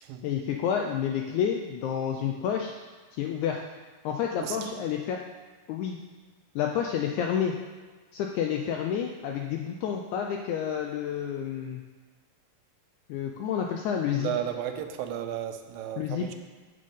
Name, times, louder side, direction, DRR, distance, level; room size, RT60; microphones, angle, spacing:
voice 1, 0.2-2.7 3.1-3.6 4.0-5.2 5.7-6.0 6.5-7.6 8.1-11.8 13.1-14.3 16.0-16.3, left 8 dB, 80° left, 2 dB, 1.7 m, -29 dB
voice 2, 4.4-4.8 14.2-16.3, right 10 dB, 85° right, 7 dB, 2.4 m, -34 dB
7.8 x 7.6 x 5.2 m, 1.4 s
omnidirectional pair, 4.0 m